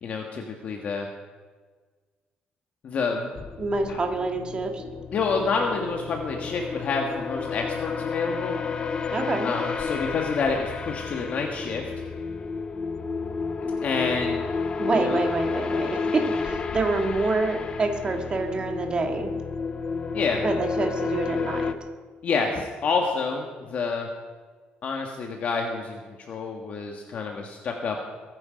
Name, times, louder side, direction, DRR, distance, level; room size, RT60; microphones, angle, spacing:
voice 1, 0.0-1.1 2.8-3.3 3.9-4.0 5.1-8.6 9.4-11.9 13.6-14.4 14.9-15.2 20.1-20.4 22.2-24.1 24.8-26.0 26.3-28.0, left 4 dB, 45° left, 2 dB, 1.6 m, -28 dB
sound 1, 3.4-21.7, left 5 dB, 30° left, 0.8 m, -31 dB
voice 2, 3.6-4.8 9.1-9.5 14.8-19.3 20.4-21.7, right 3 dB, 30° right, 3 dB, 1.9 m, -27 dB
22.5 x 9.7 x 5.3 m, 1.4 s
cardioid pair, 150°, 3 cm